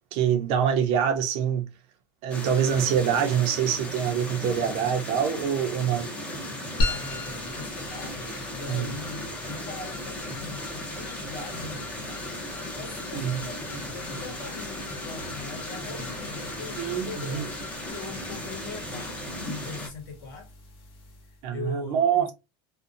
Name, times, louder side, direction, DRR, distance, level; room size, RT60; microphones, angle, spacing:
voice 1, 0.1-1.7 2.2-6.1 8.7-8.9 13.1-13.4 16.8-17.5 21.4-22.3, right 8 dB, 55° right, 0.6 m, -25 dB
sound 1, 2.3-19.9, left 1 dB, 10° left, 0.7 m, -36 dB
voice 2, 6.8-12.2 12.7-20.5 21.2-22.3, left 4 dB, 75° left, 1.1 m, -41 dB
sound 2, 6.8-21.5, left 1 dB, 50° left, 1.0 m, -38 dB
2.6 x 2.2 x 2.5 m
supercardioid pair, 150°, 12 cm